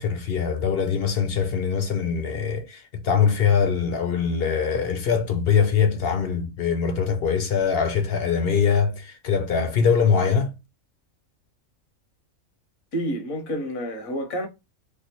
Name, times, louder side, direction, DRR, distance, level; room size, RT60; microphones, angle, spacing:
voice 1, 0.0-10.5, left 6 dB, 60° left, 0.7 m, -22 dB
voice 2, 12.9-14.5, equal, 85° left, 1.4 m, -29 dB
3.3 x 2.3 x 2.8 m
omnidirectional pair, 1.4 m